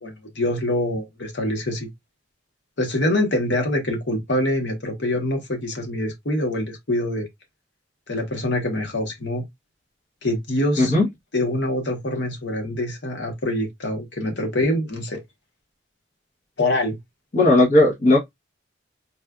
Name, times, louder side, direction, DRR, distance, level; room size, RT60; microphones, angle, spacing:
voice 1, 0.0-1.9 2.8-7.3 8.1-9.4 10.2-10.9 11.3-15.2 16.6-17.0, left 1 dB, 70° left, 1.0 m, -25 dB
voice 2, 17.3-18.2, left 2 dB, 45° left, 0.9 m, -16 dB
4.1 x 2.3 x 2.3 m
head